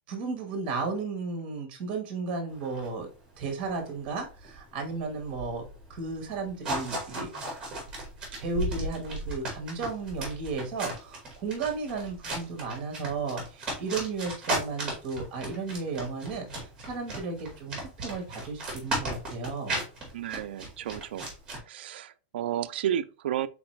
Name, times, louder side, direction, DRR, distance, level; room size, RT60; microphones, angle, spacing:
voice 1, 0.1-3.1 3.4-5.6 5.9-7.3 8.4-19.8, right 4 dB, 30° right, 1.3 m, -34 dB
sound 1, 2.5-21.6, right 1 dB, 15° right, 1.8 m, -36 dB
voice 2, 20.1-21.3 21.7-23.5, right 10 dB, 70° right, 0.4 m, -32 dB
4.0 x 3.9 x 3.1 m
supercardioid pair, 175°, 6 cm